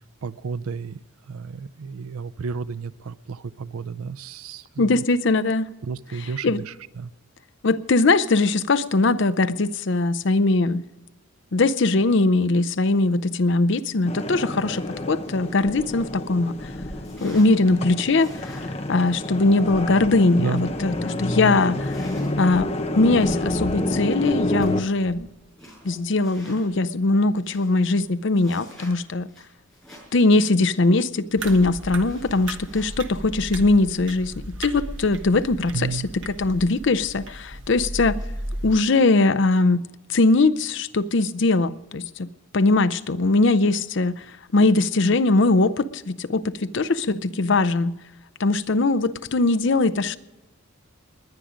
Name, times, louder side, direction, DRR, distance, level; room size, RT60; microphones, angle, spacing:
voice 1, 0.2-5.0 5.8-7.1 20.4-20.7 35.7-36.1, right 5 dB, 85° right, 18 dB, 0.5 m, -32 dB
voice 2, 4.8-5.7 6.4-6.6 7.6-10.8 11.5-16.5 17.2-18.5 18.9-22.0 22.4-22.7 22.9-25.3 25.8-29.3 30.1-34.3 34.6-38.2 38.6-39.8 40.1-42.3 42.5-44.2 44.5-47.9 48.4-50.2, left 3 dB, 55° left, 13 dB, 0.6 m, -21 dB
sound 1, 14.1-24.8, left 1 dB, 30° left, 0.8 m, -29 dB
sound 2, 15.5-26.7 27.1-27.2 27.4-30.3 30.6-30.7 31.3-32.8, right 1 dB, 5° left, 7.0 m, -44 dB
sound 3, 31.4-38.7, right 1 dB, 60° right, 1.2 m, -35 dB
20.0 x 10.0 x 5.1 m, 1.1 s
head